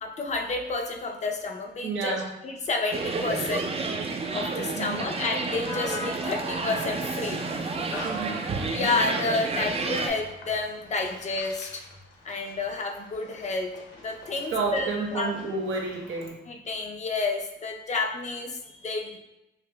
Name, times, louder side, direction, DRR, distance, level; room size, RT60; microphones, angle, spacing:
voice 1, 0.0-3.8 4.3-7.4 8.7-11.8 12.2-13.7 14.0-15.5 16.5-19.2, left 3 dB, 35° left, 3 dB, 0.5 m, -30 dB
voice 2, 1.8-2.3 4.8-5.1 8.0-8.4 14.5-16.3, right 4 dB, 85° right, 0 dB, 0.9 m, -30 dB
sound 1, 2.9-10.1, right 4 dB, 30° right, 0.4 m, -30 dB
sound 2, 5.6-16.3, left 3 dB, 75° left, 1.0 m, -44 dB
4.9 x 2.6 x 2.2 m, 0.93 s
cardioid pair, 90°, 20 cm